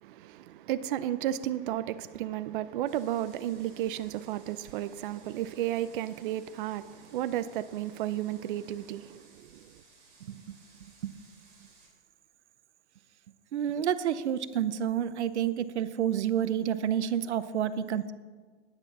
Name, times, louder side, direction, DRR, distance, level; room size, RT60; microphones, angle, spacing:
voice 1, 0.0-9.8, right 12 dB, 50° right, 0.5 m, -33 dB
sound 1, 2.9-11.9, right 4 dB, 30° right, 3.4 m, -60 dB
voice 2, 13.5-18.1, right 9 dB, 90° right, 0.8 m, -29 dB
10.0 x 9.7 x 5.9 m
hypercardioid pair, 145°, 33 cm